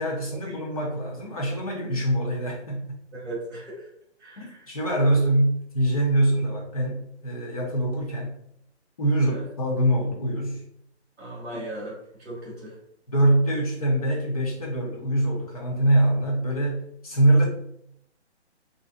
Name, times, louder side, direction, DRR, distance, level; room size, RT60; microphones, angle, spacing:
voice 1, 0.0-2.9 4.4-8.4 9.0-10.6 13.1-17.4, right 1 dB, 30° left, -2 dB, 0.7 m, -24 dB
voice 2, 3.1-3.9 4.2-4.7 9.2-9.4 11.2-12.8, right 1 dB, ahead, -16 dB, 0.7 m, -38 dB
3.9 x 2.6 x 2.4 m, 0.72 s
hypercardioid pair, 165°, 34 cm